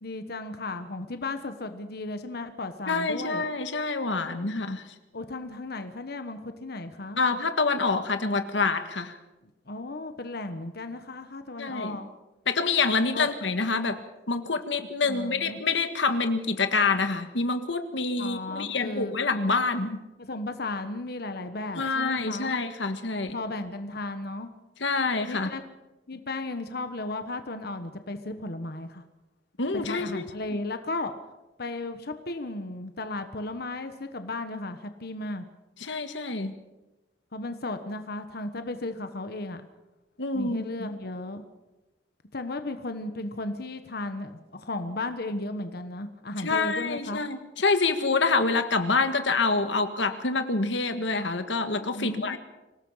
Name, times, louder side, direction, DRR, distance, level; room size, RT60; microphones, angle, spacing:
voice 1, 0.0-3.4 5.1-7.2 9.7-12.1 13.1-13.3 15.0-15.6 18.2-19.1 20.2-22.5 23.3-24.5 25.3-25.6 26.1-29.0 29.8-31.1 31.6-35.4 37.3-39.6 40.3-41.4 42.3-47.2 51.9-52.4, left 2 dB, 60° left, 8 dB, 1.3 m, -35 dB
voice 2, 2.9-4.8 7.2-9.2 11.6-12.0 12.5-14.0 14.3-20.0 21.8-23.4 24.8-25.5 29.6-30.3 35.8-36.5 40.2-40.9 46.4-52.4, left 3 dB, 90° left, 8 dB, 1.6 m, -27 dB
25.5 x 18.0 x 5.7 m, 1.0 s
head